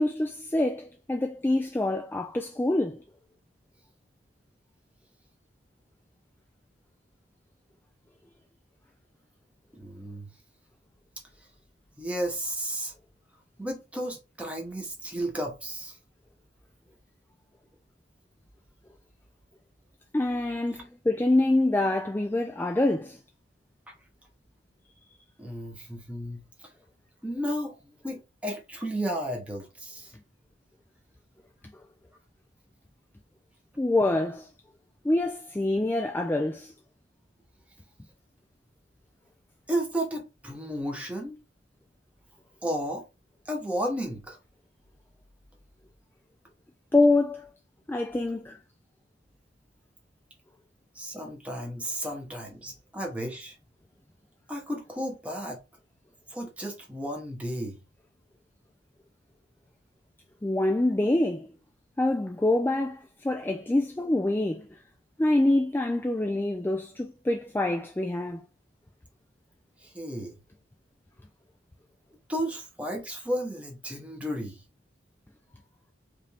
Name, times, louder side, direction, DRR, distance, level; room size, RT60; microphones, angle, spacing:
voice 1, 0.0-3.0 20.1-23.2 33.8-34.5 35.0-36.7 46.9-47.5 47.9-48.6 60.4-61.5 62.0-64.6 65.2-68.4, left 2 dB, 10° left, 0.3 m, -25 dB
voice 2, 9.7-10.3 12.0-12.9 13.6-16.0 23.9-24.0 25.4-26.7 27.2-27.8 28.0-30.1 39.7-41.4 42.6-43.0 43.5-44.4 50.9-53.6 54.5-55.6 56.3-57.8 69.8-70.4 72.3-74.6, right 1 dB, 5° right, 1.0 m, -33 dB
4.9 x 2.7 x 3.4 m
head